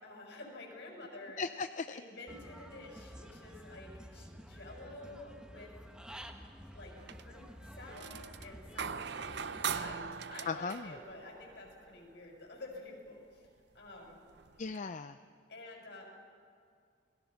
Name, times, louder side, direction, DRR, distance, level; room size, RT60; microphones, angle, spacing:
voice 1, 0.0-1.4 1.9-5.7 6.7-6.9 7.3-14.2 15.5-16.1, left 2 dB, 65° left, 0 dB, 6.9 m, -50 dB
voice 2, 1.4-2.0 10.5-10.9 14.6-15.2, left 4 dB, 40° left, 10 dB, 0.5 m, -37 dB
Human voice / Bird, 2.3-9.9, equal, 5° right, 1.4 m, -51 dB
sound 1, 7.0-7.4 7.7-11.9 13.4-13.5 14.1-14.8, right 6 dB, 65° right, 0.7 m, -41 dB
30.0 x 21.5 x 5.9 m, 2.2 s
head